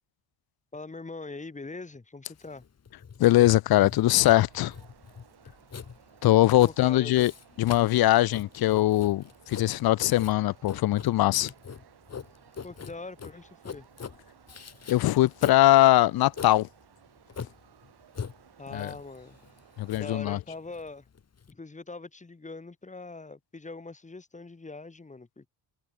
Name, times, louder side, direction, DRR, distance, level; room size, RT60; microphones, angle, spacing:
voice 1, 0.7-2.6 6.6-7.1 12.6-13.9 18.6-19.4 19.9-21.1 21.5-25.5, left 3 dB, 15° left, 2.9 m, -42 dB
Writing, 2.4-21.5, left 6 dB, 30° left, 4.4 m, -43 dB
voice 2, 3.2-4.7 6.2-7.3 7.6-11.5 14.9-16.7 18.7-18.9 19.8-20.4, left 15 dB, 50° left, 0.5 m, -21 dB
sound 1, 4.4-20.1, right 10 dB, 55° right, 6.1 m, -58 dB
cardioid pair, 150°, 47 cm